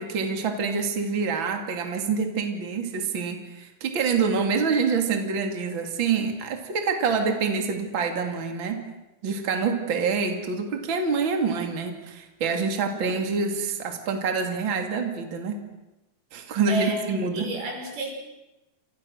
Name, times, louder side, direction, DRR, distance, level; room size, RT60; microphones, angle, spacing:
voice 1, 0.0-8.8 9.2-15.6 16.3-17.5, right 5 dB, 35° right, 4 dB, 3.1 m, -26 dB
voice 2, 16.7-18.1, right 1 dB, 90° right, 2 dB, 7.9 m, -31 dB
29.5 x 27.5 x 6.6 m, 1.0 s
omnidirectional pair, 4.3 m